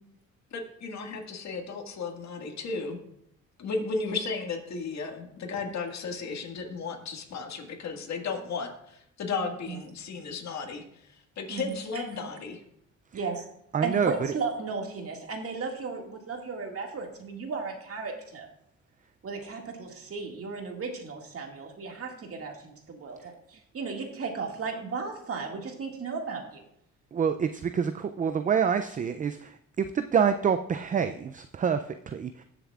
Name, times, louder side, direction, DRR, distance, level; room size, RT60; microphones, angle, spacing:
voice 1, 0.5-3.0 3.6-10.8 11.4-12.6, left 4 dB, 65° left, 2 dB, 1.9 m, -34 dB
voice 2, 11.5-12.0 13.1-13.4 13.8-18.5 19.2-26.6, right 4 dB, 50° right, 2 dB, 2.0 m, -35 dB
voice 3, 13.7-14.1 27.1-32.4, right 7 dB, 25° right, 9 dB, 0.4 m, -27 dB
20.5 x 6.9 x 2.4 m, 0.73 s
cardioid pair, 90°, 30 cm